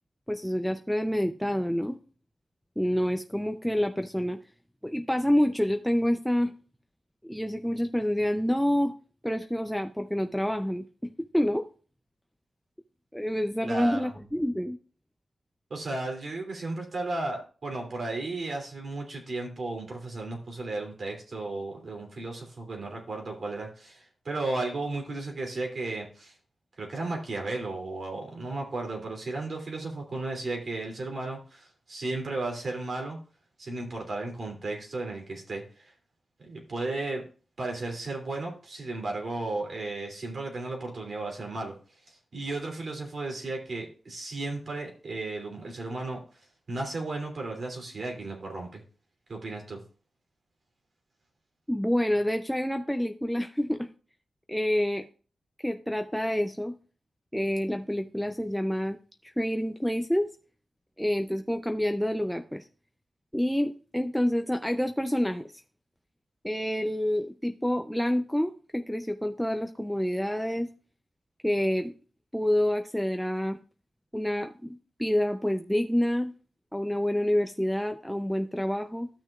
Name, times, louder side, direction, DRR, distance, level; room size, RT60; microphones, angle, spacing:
voice 1, 0.3-2.0 2.8-4.4 4.8-6.5 7.2-8.9 9.2-10.9 11.2-11.6 13.1-14.8 51.7-53.9 54.5-55.1 55.6-56.7 57.3-59.0 59.2-60.3 61.0-62.7 63.3-65.6 66.4-70.7 71.4-71.9 72.3-73.6 74.1-76.3 76.7-79.1, equal, ahead, 6 dB, 0.6 m, -28 dB
voice 2, 13.6-14.1 15.7-26.3 26.8-33.2 33.6-35.9 36.4-37.2 37.6-41.7 42.1-46.4 46.7-48.8 49.3-49.8, right 2 dB, 60° right, 1 dB, 2.9 m, -34 dB
13.5 x 6.2 x 2.4 m, 0.39 s
cardioid pair, 65°, 0 cm